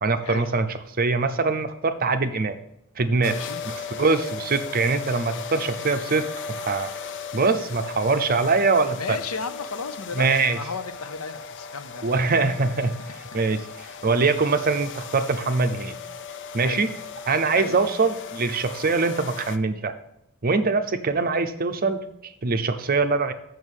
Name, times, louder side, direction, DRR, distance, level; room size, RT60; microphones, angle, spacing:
voice 1, 0.0-0.7 1.0-2.6 3.0-3.4 3.7-6.2 6.6-6.9 7.3-9.2 10.1-10.6 12.0-12.9 13.3-13.7 14.0-16.0 16.5-16.9 17.3-19.9 20.4-23.3, right 4 dB, 45° right, 8 dB, 0.7 m, -23 dB
sound 1, 3.2-19.6, left 5 dB, 60° left, 0.5 m, -37 dB
voice 2, 3.3-3.6 9.0-12.1 12.8-12.9 16.6-16.9 17.5-17.8, left 4 dB, 85° left, 11 dB, 0.8 m, -34 dB
7.1 x 6.3 x 6.3 m, 0.79 s
head